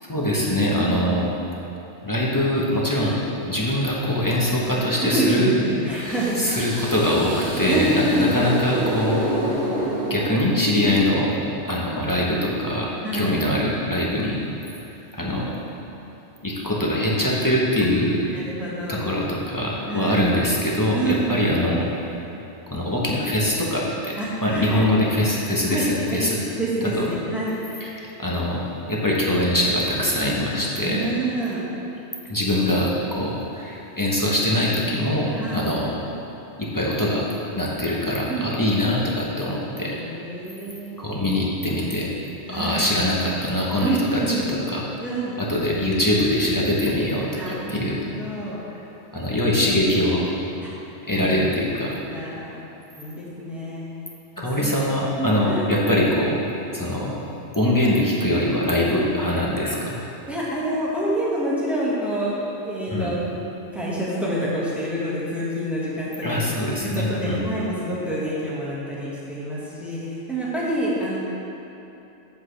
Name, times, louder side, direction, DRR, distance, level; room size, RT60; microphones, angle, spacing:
voice 1, 0.0-1.3 2.0-3.2 3.5-5.5 5.9-9.2 10.1-11.3 11.6-14.4 15.1-15.5 16.4-18.2 18.9-21.9 22.7-24.2 24.4-26.4 27.0-27.1 27.8-27.9 28.2-31.1 32.3-36.0 36.6-37.3 37.6-40.0 41.0-42.1 42.5-44.9 45.4-48.0 49.1-50.3 51.1-51.9 54.4-56.4 56.7-57.2 57.5-60.0 62.9-63.1 66.2-67.4, left 1 dB, 20° left, -5 dB, 0.8 m, -23 dB
voice 2, 5.0-6.4 7.7-8.3 10.8-11.0 13.0-13.3 18.3-19.1 19.9-20.3 20.9-21.5 24.2-24.9 25.7-26.2 26.6-27.6 30.8-31.6 35.3-35.7 38.3-38.5 39.8-41.0 42.5-42.8 43.8-44.5 45.0-45.4 47.4-48.6 50.6-50.7 51.1-51.3 52.1-52.6 53.0-53.9 54.4-54.8 55.2-55.6 60.3-62.3 62.6-66.6 66.9-71.2, right 1 dB, ahead, -8 dB, 1.4 m, -27 dB
sound 1, 5.9-11.0, right 1 dB, 65° right, 1.7 m, -28 dB
8.0 x 7.3 x 3.3 m, 2.9 s
omnidirectional pair, 1.3 m